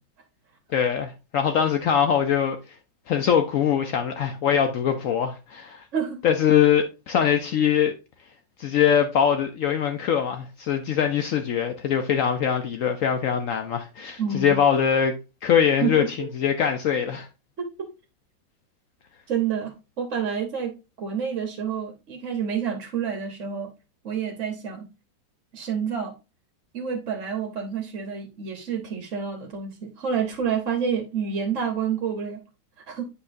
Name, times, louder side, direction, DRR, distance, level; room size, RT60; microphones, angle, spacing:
voice 1, 0.7-2.6 3.1-5.9 6.2-7.9 8.6-15.1 15.4-17.3, left 8 dB, 80° left, 0.7 m, -22 dB
voice 2, 14.2-14.6 15.8-16.3 17.6-17.7 19.3-20.7 21.0-23.7 24.0-24.9 25.5-26.1 26.7-32.4 32.9-33.0, right 7 dB, 45° right, 1.2 m, -28 dB
8.5 x 5.3 x 2.5 m
omnidirectional pair, 2.1 m